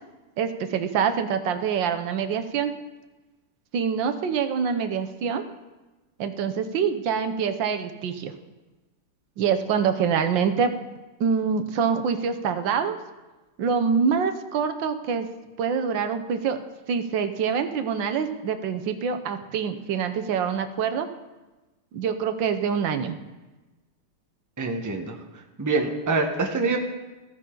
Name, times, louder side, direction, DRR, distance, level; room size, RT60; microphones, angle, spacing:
voice 1, 0.4-2.7 3.7-5.4 6.2-8.3 9.4-10.7 11.2-13.0 13.6-15.3 15.6-16.6 16.9-21.1 21.9-23.2, right 6 dB, 65° right, 8 dB, 1.4 m, -25 dB
voice 2, 24.6-25.2 25.6-26.8, right 3 dB, 15° right, 3 dB, 0.6 m, -25 dB
14.5 x 14.5 x 3.9 m, 1.2 s
omnidirectional pair, 2.4 m